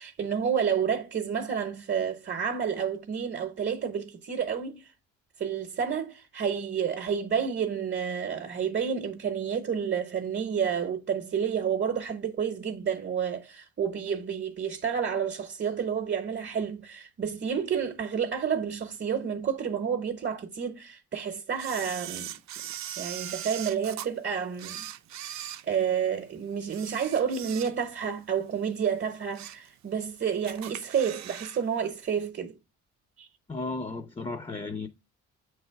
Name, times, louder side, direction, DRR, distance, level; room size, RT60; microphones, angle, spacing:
voice 1, 0.0-4.8 5.4-22.3 23.0-32.6 33.2-33.3, right 7 dB, 40° right, 0.9 m, -30 dB
Camera, 21.6-24.1 24.5-26.2 26.6-28.0 28.4-28.6 29.1-29.7 30.0-30.1 30.4-31.6 31.9-32.0, right 12 dB, 65° right, 0.6 m, -40 dB
voice 2, 33.5-34.9, left 3 dB, 20° left, 0.7 m, -34 dB
7.4 x 3.4 x 4.5 m
cardioid pair, 90°, 30 cm